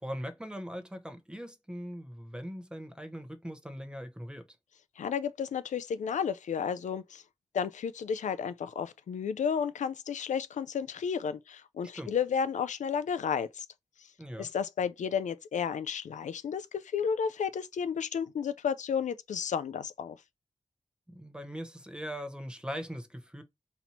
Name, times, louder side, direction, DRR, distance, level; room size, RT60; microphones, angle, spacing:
voice 1, 0.0-4.5 12.0-12.1 14.2-14.5 21.1-23.4, equal, 5° right, 0.8 m, -40 dB
voice 2, 5.0-7.2 7.5-13.6 14.4-20.2, left 7 dB, 80° left, 0.4 m, -32 dB
4.2 x 2.7 x 4.3 m
wide cardioid pair, 110°, 12 cm